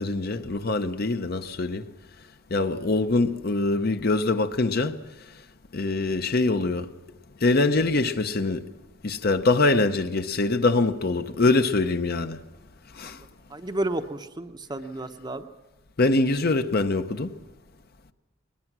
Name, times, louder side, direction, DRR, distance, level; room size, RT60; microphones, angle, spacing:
voice 1, 0.0-1.9 2.5-5.0 5.7-6.9 7.4-8.7 9.0-12.4 12.9-13.2 16.0-17.3, left 3 dB, 50° left, 0.8 m, -24 dB
voice 2, 13.5-15.5, right 1 dB, 20° right, 0.8 m, -31 dB
21.0 x 20.5 x 6.1 m
head